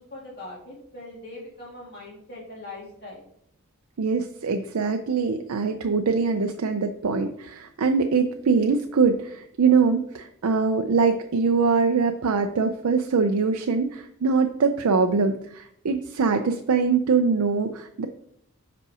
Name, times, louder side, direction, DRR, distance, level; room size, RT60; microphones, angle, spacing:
voice 1, 0.0-3.3, left 2 dB, 45° left, -6 dB, 2.2 m, -41 dB
voice 2, 4.0-18.1, right 5 dB, 85° right, 6 dB, 0.5 m, -23 dB
5.4 x 5.2 x 4.8 m, 0.71 s
head